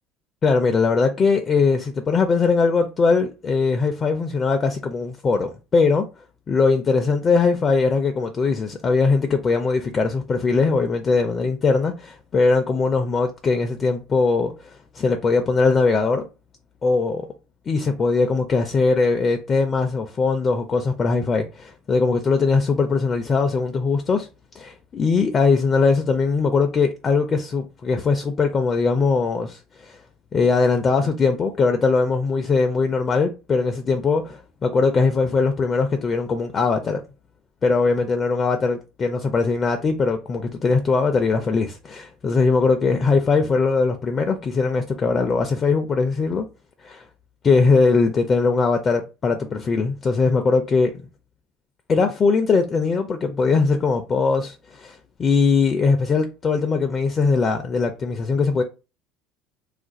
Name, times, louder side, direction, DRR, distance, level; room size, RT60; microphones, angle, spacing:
voice 1, 0.4-6.1 6.5-16.2 16.8-17.2 17.7-24.3 24.6-30.0 30.3-37.0 37.6-46.5 46.8-47.0 47.4-50.9 51.9-58.6, left 4 dB, 30° left, 0.4 m, -20 dB
2.4 x 2.2 x 3.9 m
supercardioid pair, 120°, 0 cm